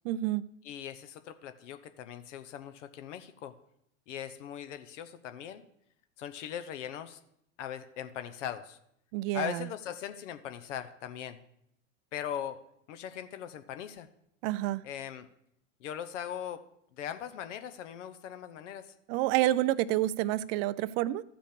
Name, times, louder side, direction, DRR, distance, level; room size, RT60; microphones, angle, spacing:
voice 1, 0.0-0.4 9.1-9.7 14.4-14.9 19.1-21.2, right 15 dB, 50° right, 17 dB, 0.6 m, -28 dB
voice 2, 0.6-3.5 4.1-5.6 6.2-7.2 7.6-8.8 9.3-11.4 12.1-12.6 12.9-14.1 14.8-15.3 15.8-16.6 16.9-18.9, left 10 dB, 70° left, 10 dB, 0.9 m, -40 dB
13.5 x 5.2 x 5.0 m, 0.73 s
hypercardioid pair, 105°, 38 cm